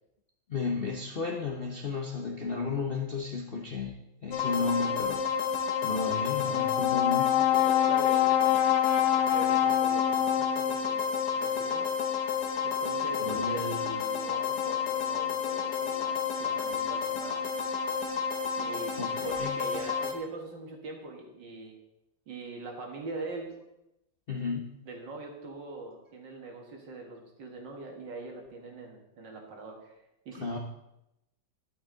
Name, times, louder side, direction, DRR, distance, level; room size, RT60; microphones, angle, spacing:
voice 1, 0.5-4.0 4.2-5.2 5.8-7.4 13.2-13.8 19.0-19.6 24.3-24.7 30.4-30.6, left 4 dB, 45° left, 0 dB, 0.7 m, -33 dB
sound 1, 4.3-20.1, left 6 dB, 60° left, 1.6 m, -30 dB
Brass instrument, 6.5-10.9, left 13 dB, 75° left, 0.9 m, -26 dB
voice 2, 7.5-8.7 9.0-11.9 12.6-17.4 18.6-21.8 22.3-23.5 24.9-30.6, right 3 dB, 60° right, 2 dB, 2.2 m, -42 dB
11.0 x 8.1 x 3.9 m, 0.87 s
omnidirectional pair, 2.2 m